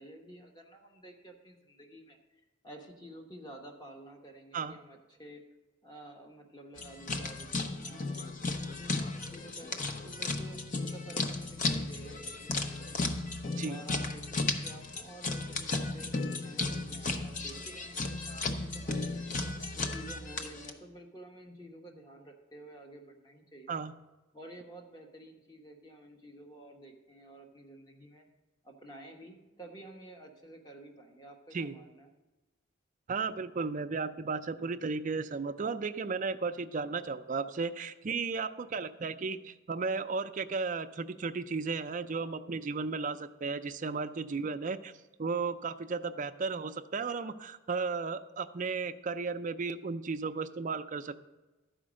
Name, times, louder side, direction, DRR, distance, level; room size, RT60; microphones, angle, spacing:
voice 1, 0.0-2.2 2.6-5.4 5.8-13.0 13.6-19.3 19.7-23.7 24.3-28.3 28.6-32.1, right 1 dB, 20° left, 2 dB, 1.1 m, -51 dB
sound 1, 6.8-20.7, left 3 dB, 40° left, 0.7 m, -35 dB
voice 2, 33.1-44.9 45.2-51.2, right 4 dB, 40° right, 9 dB, 0.4 m, -34 dB
12.0 x 5.0 x 6.3 m, 1.1 s
head